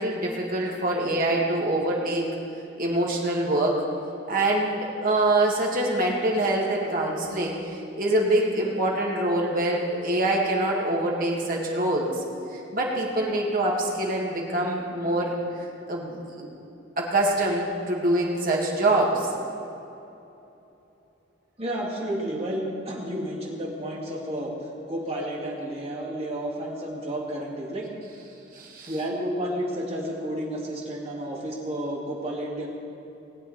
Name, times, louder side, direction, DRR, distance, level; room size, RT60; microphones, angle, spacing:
voice 1, 0.0-2.3 2.8-3.8 4.3-12.1 12.7-15.4 15.9-16.5 17.0-19.3 28.5-28.9, right 1 dB, 45° right, -2 dB, 2.1 m, -25 dB
voice 2, 21.6-24.5 24.9-27.9 28.9-32.7, right 1 dB, 30° right, -3 dB, 2.3 m, -31 dB
19.5 x 8.8 x 4.3 m, 2.9 s
head